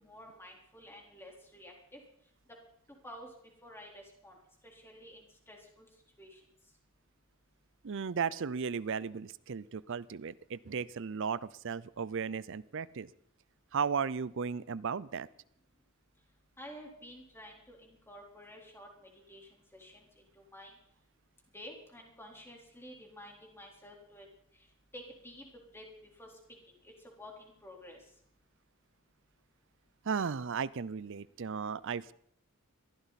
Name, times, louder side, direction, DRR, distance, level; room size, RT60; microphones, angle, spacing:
voice 1, 0.0-2.0 3.0-3.3 3.6-4.4 4.6-5.9 6.2-6.4 16.6-20.1 20.4-20.7 21.5-24.3 24.9-25.5 25.7-25.9 26.2-26.3 26.7-28.0, equal, 10° left, 0 dB, 3.9 m, -51 dB
voice 2, 7.8-13.1 13.7-15.3 30.0-32.1, right 6 dB, 60° right, 19 dB, 0.5 m, -35 dB
22.5 x 15.5 x 4.2 m, 0.68 s
head